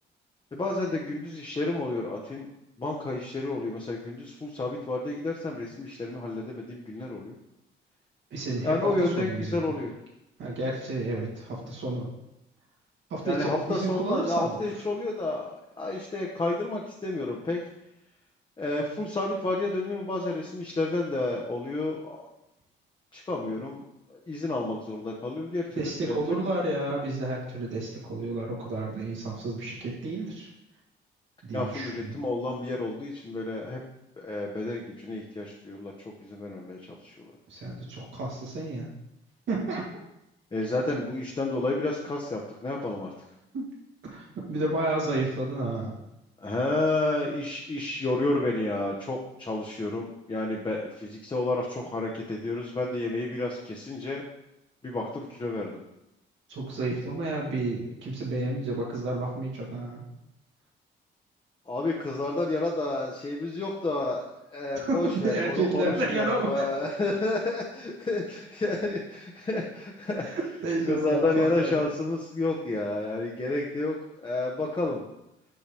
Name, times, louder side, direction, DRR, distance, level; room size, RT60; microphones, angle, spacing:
voice 1, 0.5-2.5 2.8-7.4 8.6-9.9 13.2-17.6 18.6-22.3 23.1-23.8 24.1-26.4 31.5-33.8 34.2-35.9 36.2-37.1 40.5-43.1 46.4-54.2 54.8-55.8 61.7-70.3 70.9-75.0, left 2 dB, 25° left, -1 dB, 0.9 m, -30 dB
voice 2, 8.3-9.6 10.4-12.1 13.1-14.6 25.8-30.5 31.4-32.1 37.5-38.9 39.5-39.8 43.5-43.7 44.0-45.9 56.5-60.1 64.7-66.6 70.3-71.7, right 2 dB, 70° right, -3 dB, 2.1 m, -31 dB
5.7 x 5.5 x 3.4 m, 0.89 s
cardioid pair, 90°, 20 cm